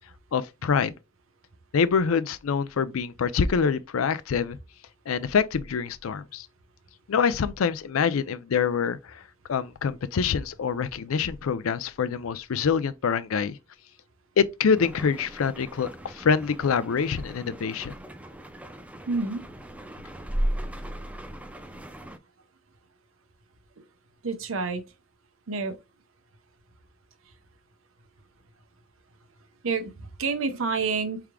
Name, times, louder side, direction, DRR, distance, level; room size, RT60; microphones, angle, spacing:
voice 1, 0.3-0.9 1.7-4.6 5.1-6.5 7.1-9.2 9.5-13.6 14.4-17.9, left 6 dB, 85° left, 0.4 m, -25 dB
sound 1, 14.7-22.2, right 1 dB, 5° right, 0.4 m, -36 dB
voice 2, 19.1-19.4 24.2-24.8 25.5-25.8 29.6-31.2, right 4 dB, 70° right, 0.8 m, -28 dB
4.7 x 3.5 x 2.2 m
head